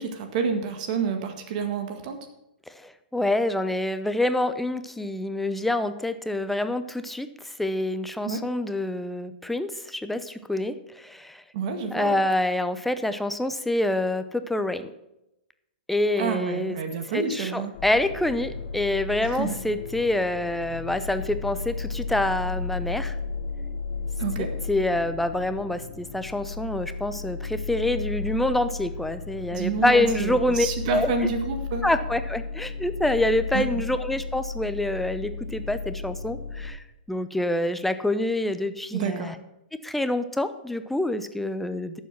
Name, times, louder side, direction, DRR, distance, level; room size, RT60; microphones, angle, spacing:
voice 1, 0.0-2.2 8.2-8.4 11.5-12.2 16.2-17.7 19.2-19.5 24.2-24.5 29.5-31.8 33.5-33.6 38.9-39.3, right 5 dB, 50° right, 6 dB, 1.8 m, -29 dB
voice 2, 2.8-7.3 7.6-11.4 11.9-14.9 15.9-16.8 17.1-23.2 24.4-31.3 31.8-39.3 39.8-42.0, left 1 dB, 5° left, 10 dB, 0.7 m, -26 dB
sound 1, 17.7-36.7, left 4 dB, 55° left, 1.7 m, -34 dB
11.5 x 7.3 x 6.0 m, 0.88 s
hypercardioid pair, 135°, 5 cm